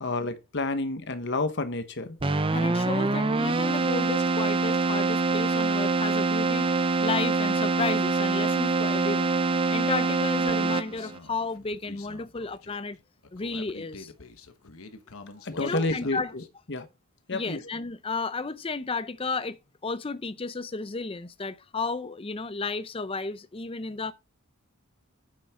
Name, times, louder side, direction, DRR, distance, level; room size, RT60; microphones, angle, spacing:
voice 1, 0.0-2.2 15.4-16.4 16.7-16.9 17.3-17.6, left 2 dB, 50° left, 1.3 m, -29 dB
Keyboard (musical), 2.2-11.2, right 3 dB, 25° right, 0.6 m, -25 dB
voice 2, 2.5-9.4 9.7-13.0 13.3-14.1 15.6-16.3 17.3-24.1, left 4 dB, 25° left, 0.5 m, -33 dB
Human voice, 10.5-16.5, left 3 dB, 70° left, 1.2 m, -47 dB
9.3 x 7.5 x 3.7 m
head